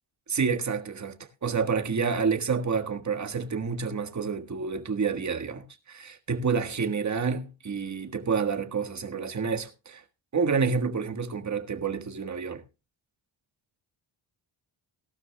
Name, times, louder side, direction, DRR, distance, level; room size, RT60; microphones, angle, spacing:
voice 1, 0.3-10.0 10.3-12.6, right 5 dB, 35° right, 1.6 m, -29 dB
18.0 x 12.0 x 2.2 m
cardioid pair, 100°, 47 cm